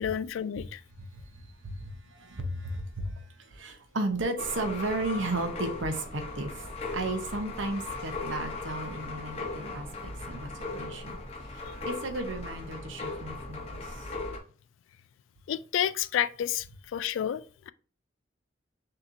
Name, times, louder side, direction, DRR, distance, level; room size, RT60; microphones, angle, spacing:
voice 1, 0.0-0.8 15.5-16.7 16.9-17.7, left 9 dB, 90° left, 0.3 m, -30 dB
voice 2, 1.0-6.7 6.9-11.2 11.5-14.1, right 2 dB, 85° right, 0.9 m, -34 dB
sound 1, 4.4-14.4, left 3 dB, 30° left, 0.7 m, -38 dB
6.5 x 2.9 x 2.6 m
head